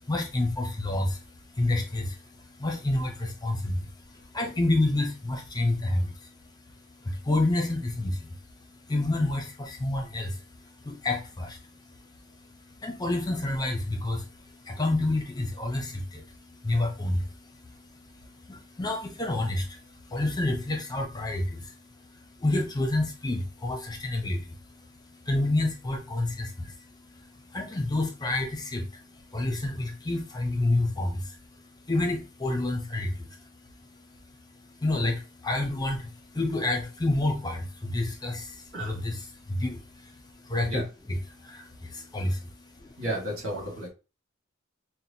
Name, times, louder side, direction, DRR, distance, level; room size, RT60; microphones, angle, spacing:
voice 1, 0.0-6.3 6.7-43.0, left 2 dB, 20° left, 2 dB, 0.8 m, -30 dB
voice 2, 43.0-43.9, right 1 dB, 70° right, 0 dB, 1.7 m, -33 dB
6.0 x 2.2 x 2.7 m, 0.31 s
head